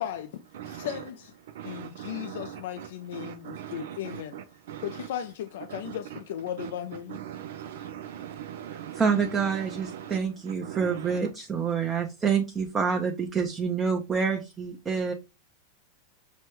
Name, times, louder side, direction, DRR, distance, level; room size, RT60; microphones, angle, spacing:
voice 1, 0.0-0.4 0.6-1.4 1.6-4.4 4.8-7.2 7.7-7.9, left 10 dB, 75° left, 0.3 m, -36 dB
voice 2, 0.6-0.9 1.6-2.9 3.1-4.8 5.7-6.0 6.6-6.7 7.1-9.0 9.6-10.2 10.6-11.2, right 10 dB, 80° right, 0.4 m, -40 dB
voice 3, 8.9-15.1, right 6 dB, 20° right, 0.6 m, -27 dB
6.2 x 2.2 x 2.9 m
supercardioid pair, 135°, 0 cm